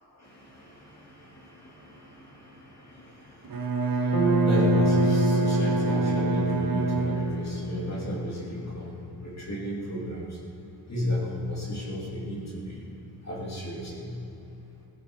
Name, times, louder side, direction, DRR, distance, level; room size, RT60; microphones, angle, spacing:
voice 1, 0.1-10.4 10.9-12.8 13.2-14.2, left 1 dB, 35° left, -5 dB, 2.9 m, -34 dB
Bowed string instrument, 3.4-7.7, right 3 dB, 50° right, 1.2 m, -26 dB
Bass guitar, 4.1-8.5, equal, 80° left, 2.9 m, -27 dB
17.0 x 11.0 x 4.8 m, 3.0 s
cardioid pair, 105°, 44 cm